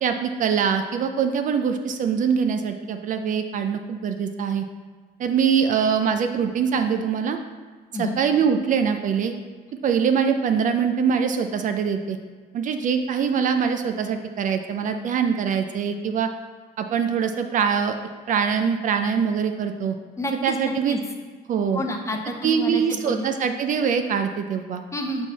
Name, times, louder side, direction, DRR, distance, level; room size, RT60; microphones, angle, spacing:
voice 1, 0.0-4.6 5.2-7.4 8.0-9.3 9.8-12.2 12.5-16.3 16.8-18.0 18.3-20.0 20.4-21.0 21.5-21.8 22.4-24.8, right 7 dB, 50° right, 7 dB, 0.5 m, -23 dB
voice 2, 20.2-21.0 21.7-23.3 24.9-25.3, left 1 dB, 15° left, 3 dB, 0.7 m, -29 dB
5.6 x 4.4 x 4.1 m, 1.5 s
cardioid pair, 110°, 17 cm